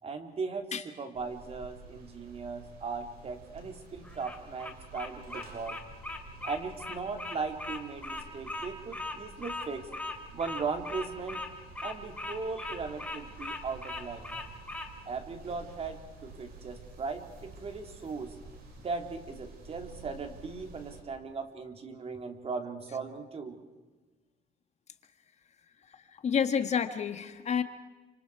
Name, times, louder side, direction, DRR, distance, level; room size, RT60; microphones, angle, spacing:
voice 1, 0.0-5.8 6.4-9.9 10.3-11.4 11.8-14.5 15.1-18.4 18.8-23.6, right 4 dB, 35° right, 5 dB, 3.1 m, -38 dB
sound 1, 1.1-21.0, right 3 dB, 60° right, 7.1 m, -51 dB
Bird vocalization bird call bird song, 4.0-14.9, left 2 dB, 10° left, 2.8 m, -39 dB
voice 2, 26.2-27.6, left 7 dB, 40° left, 8 dB, 1.7 m, -29 dB
29.0 x 26.5 x 4.8 m, 1.3 s
cardioid pair, 110°, 17 cm